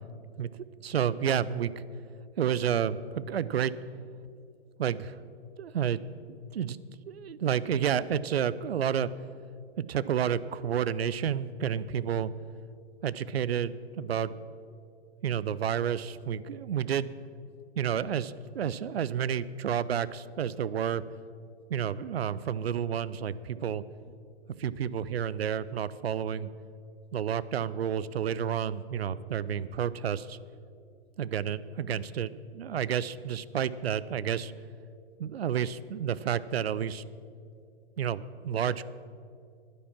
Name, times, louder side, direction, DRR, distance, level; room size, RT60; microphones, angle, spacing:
voice 1, 0.8-1.7 2.4-3.7 4.8-5.1 5.6-6.0 6.5-6.8 7.1-9.1 9.8-12.3 13.0-14.3 15.2-17.1 17.8-21.0 21.7-23.8 24.6-26.5 27.1-30.4 31.2-34.5 35.2-37.0 38.0-38.8, right 8 dB, 70° right, 17 dB, 0.6 m, -30 dB
10.5 x 10.0 x 7.4 m, 2.4 s
figure-of-eight pair, 115°, 32 cm